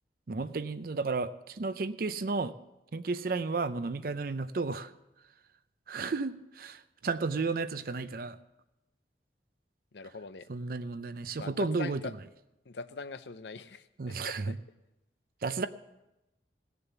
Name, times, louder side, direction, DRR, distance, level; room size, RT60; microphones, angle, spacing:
voice 1, 0.3-2.5 2.9-4.9 5.9-8.4 10.5-12.0 14.0-14.6 15.4-15.7, right 4 dB, 50° right, 12 dB, 0.5 m, -33 dB
voice 2, 9.9-10.5 11.4-12.1 12.7-14.5, left 4 dB, 75° left, 12 dB, 0.7 m, -42 dB
17.0 x 6.9 x 7.0 m, 0.95 s
head